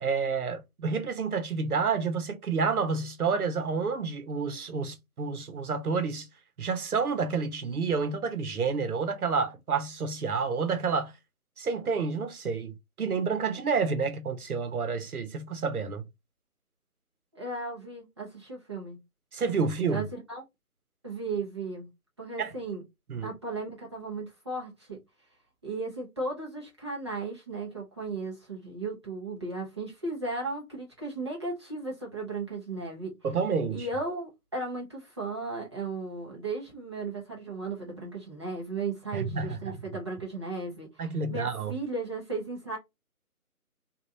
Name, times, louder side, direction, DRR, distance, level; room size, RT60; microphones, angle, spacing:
voice 1, 0.0-6.3 6.6-11.1 11.6-16.0 19.3-20.1 22.4-22.5 23.1-23.3 33.2-33.9 39.1-39.8 41.0-41.7, right 5 dB, 75° right, 0.9 m, -29 dB
voice 2, 17.3-19.0 19.9-20.4 21.0-21.9 22.2-22.8 23.2-25.0 25.6-33.1 33.7-41.0 41.3-42.8, right 3 dB, 20° right, 0.7 m, -35 dB
3.1 x 2.5 x 2.6 m
figure-of-eight pair, 155°, 45 cm